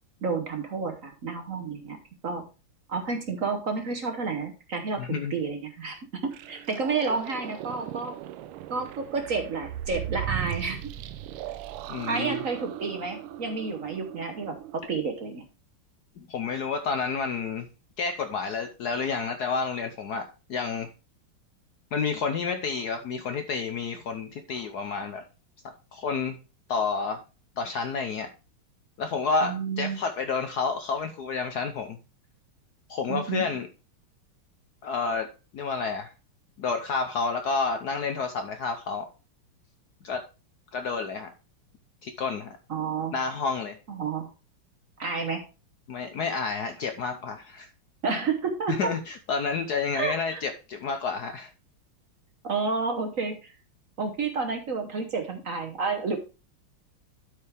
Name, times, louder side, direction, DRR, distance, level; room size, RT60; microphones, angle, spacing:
voice 1, 0.2-2.0 2.2-2.4 2.9-8.1 8.7-10.8 12.1-15.4 29.4-30.0 33.1-33.5 42.7-43.2 43.9-44.3 45.0-45.4 48.0-48.9 49.9-50.4 52.4-53.5 54.0-56.2, right 4 dB, 50° right, 5 dB, 1.1 m, -30 dB
voice 2, 5.0-5.4 11.9-12.4 16.2-17.7 18.0-20.9 21.9-25.2 25.9-26.4 26.7-27.2 27.6-28.3 29.0-32.0 32.9-33.7 34.8-36.1 36.6-39.1 40.0-40.2 40.7-41.3 42.0-42.6 43.1-43.8 45.9-47.7 48.8-51.5, left 5 dB, 65° left, 7 dB, 1.0 m, -30 dB
sound 1, 6.3-14.8, right 12 dB, 80° right, 1.5 m, -37 dB
12.0 x 4.9 x 3.4 m, 0.31 s
omnidirectional pair, 2.4 m